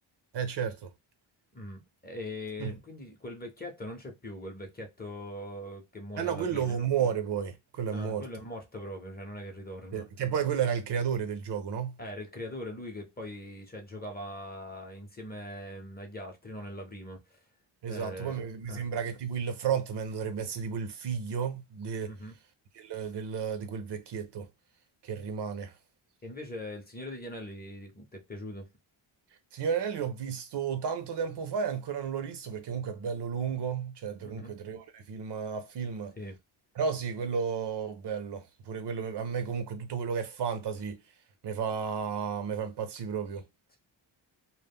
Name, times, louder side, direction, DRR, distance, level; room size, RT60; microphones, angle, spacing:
voice 1, 0.3-0.9 2.6-2.7 6.2-8.3 9.9-12.0 17.8-22.1 22.7-24.5 25.0-25.8 29.5-36.1 36.8-41.0 41.4-43.5, right 7 dB, 60° right, 0.6 m, -32 dB
voice 2, 1.5-6.9 7.9-10.1 12.0-17.4 17.9-18.8 22.1-22.3 26.2-28.7 34.2-34.5 36.2-36.4, left 1 dB, 20° left, 0.6 m, -41 dB
2.1 x 2.0 x 3.4 m
cardioid pair, 95°, 48 cm